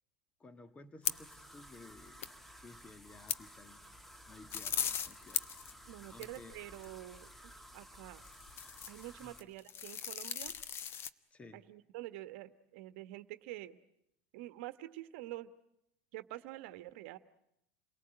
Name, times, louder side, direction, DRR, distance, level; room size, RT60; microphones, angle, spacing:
voice 1, 0.4-2.3 2.6-3.8 4.3-6.6 9.2-9.4 11.3-11.6, left 2 dB, 20° left, 9 dB, 1.6 m, -55 dB
sound 1, 1.0-6.4, left 10 dB, 90° left, 0.9 m, -42 dB
sound 2, 1.0-9.4, equal, 5° left, 1.2 m, -55 dB
sound 3, 4.5-5.7 6.3-6.9 8.2-9.0 9.4-11.1, left 8 dB, 35° left, 0.9 m, -40 dB
voice 2, 5.9-8.2 8.9-10.5 11.5-13.8 14.3-15.5 16.1-17.2, right 16 dB, 70° right, 12 dB, 1.2 m, -47 dB
29.0 x 18.5 x 8.9 m, 0.81 s
supercardioid pair, 120°, 7 cm